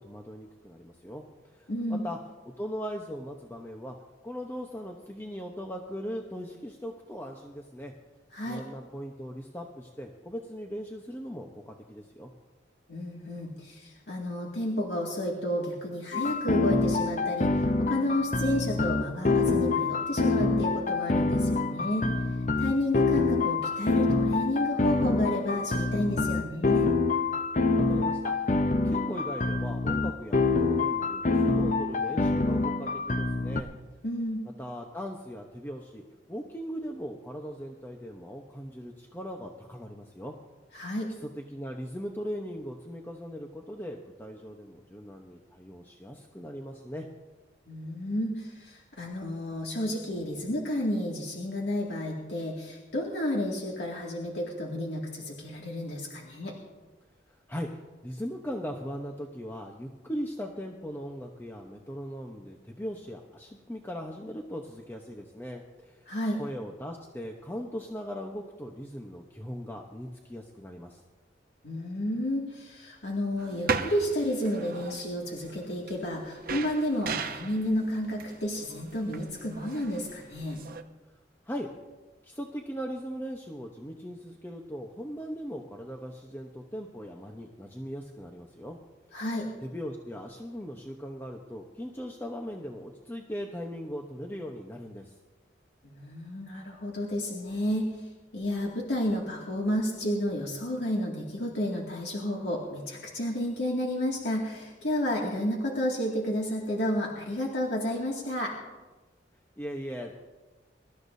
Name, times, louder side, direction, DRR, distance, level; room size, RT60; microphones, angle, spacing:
voice 1, 0.0-2.2 2.6-4.0 4.2-7.9 8.5-12.3 27.8-28.6 28.8-33.7 34.6-40.3 41.2-47.1 57.5-66.1 66.3-71.0 81.5-81.7 82.2-88.8 89.1-89.2 89.6-95.1 109.6-110.1, equal, 10° left, 1 dB, 0.9 m, -39 dB
voice 2, 1.7-2.0 8.3-8.6 12.9-22.1 22.6-26.9 34.0-34.4 40.7-41.1 47.7-56.5 66.1-66.4 71.6-80.6 89.1-89.5 95.8-108.5, left 1 dB, 85° left, -3 dB, 2.3 m, -31 dB
sound 1, 16.1-33.6, left 3 dB, 45° left, 0.7 m, -26 dB
sound 2, 73.4-80.8, right 5 dB, 55° right, 0.9 m, -37 dB
25.5 x 13.5 x 2.7 m, 1.2 s
head